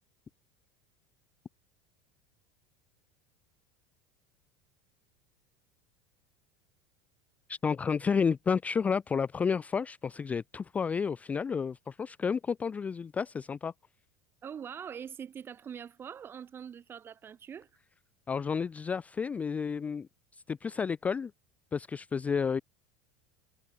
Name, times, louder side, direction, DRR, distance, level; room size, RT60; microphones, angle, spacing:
voice 1, 7.5-13.7 18.3-21.3 21.7-22.6, left 6 dB, 15° left, 0.4 m, -31 dB
voice 2, 14.4-17.7, right 8 dB, 20° right, 1.2 m, -43 dB
supercardioid pair, 160°, 11 cm